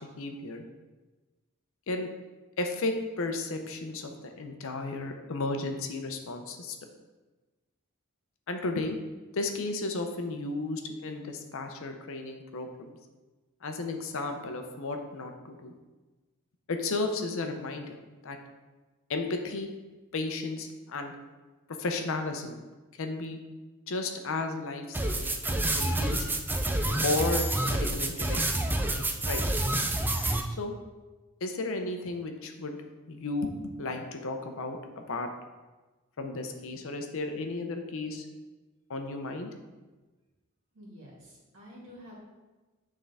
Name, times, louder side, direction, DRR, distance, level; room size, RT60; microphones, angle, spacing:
voice 1, 0.2-0.6 1.9-2.1 2.6-6.8 8.5-9.0 9.3-13.0 13.6-15.7 16.7-18.0 18.2-18.4 19.1-19.7 20.1-21.2 21.8-22.6 23.0-23.4 23.9-26.3 27.0-27.5 27.7-28.6 29.3-29.4 30.5-30.7 31.4-32.8 33.1-35.3 36.2-38.3 38.9-39.5, left 3 dB, 70° left, 5 dB, 0.7 m, -34 dB
sound 1, 24.9-30.4, right 1 dB, 10° right, 0.4 m, -28 dB
voice 2, 40.7-42.2, equal, 60° right, -5 dB, 2.1 m, -49 dB
8.7 x 3.7 x 3.4 m, 1.2 s
head